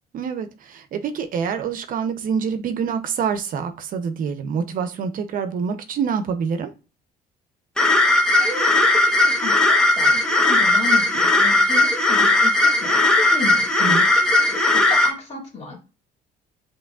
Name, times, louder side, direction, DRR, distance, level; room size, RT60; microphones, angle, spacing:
voice 1, 0.1-6.7 13.8-14.1, right 6 dB, 55° right, 0.6 m, -26 dB
sound 1, 7.8-15.1, left 2 dB, 5° left, 0.9 m, -17 dB
voice 2, 8.4-13.7 14.4-15.8, left 4 dB, 40° left, 2.2 m, -33 dB
6.8 x 3.0 x 2.3 m
cardioid pair, 110°, 17 cm